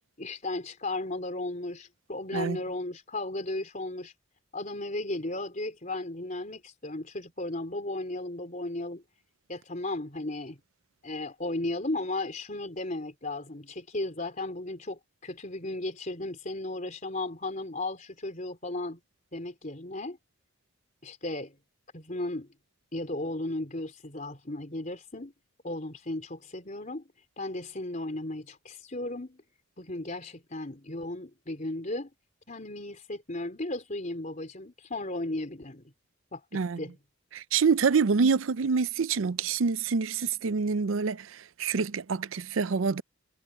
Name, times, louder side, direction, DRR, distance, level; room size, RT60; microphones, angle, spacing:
voice 1, 0.0-4.1 4.5-9.0 9.5-10.6 11.0-19.0 19.3-20.2 21.0-21.6 21.9-22.5 22.9-25.3 25.6-27.0 27.4-29.4 29.8-32.1 32.5-35.8 36.3-36.9, left 2 dB, 40° left, 3.7 m, -35 dB
voice 2, 37.3-43.0, right 5 dB, 90° right, 0.5 m, -26 dB
head